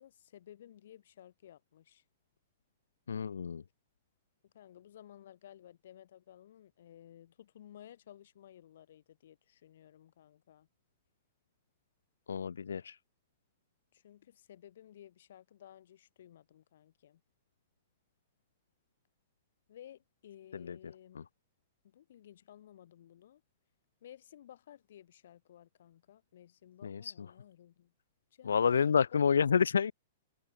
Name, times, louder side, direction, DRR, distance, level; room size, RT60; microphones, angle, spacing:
voice 1, 0.0-2.0 4.4-10.7 13.9-17.2 19.7-21.3 21.8-23.4 24.0-27.9 28.3-29.2, left 11 dB, 70° left, 6.7 m, -56 dB
voice 2, 3.1-3.6 12.3-13.0 20.7-20.8 21.2-21.3 26.8-27.1 28.5-29.9, left 6 dB, 90° left, 0.6 m, -29 dB
hypercardioid pair, 125°, 0 cm